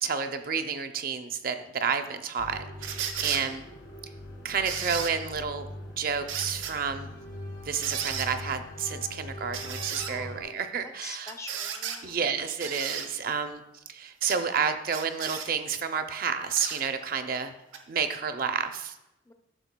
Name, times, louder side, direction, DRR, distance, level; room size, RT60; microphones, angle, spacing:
voice 1, 0.0-3.6 4.4-5.7 6.0-7.2 7.6-11.3 12.0-17.5 17.9-19.0, right 6 dB, 50° right, 7 dB, 0.5 m, -30 dB
sound 1, 2.4-10.4, left 1 dB, 80° left, 1.7 m, -42 dB
sound 2, 2.8-3.4 4.7-5.1 6.3-6.7 7.8-8.3 9.5-10.1 11.3-12.0 12.6-13.1 14.2-14.4 14.9-15.5 16.6-16.8 17.7-17.8, right 8 dB, 85° right, 0.8 m, -34 dB
voice 2, 10.1-10.5 11.0-12.2 19.2-19.3, left 3 dB, 15° left, 5 dB, 0.4 m, -44 dB
12.0 x 6.4 x 2.2 m, 0.91 s
head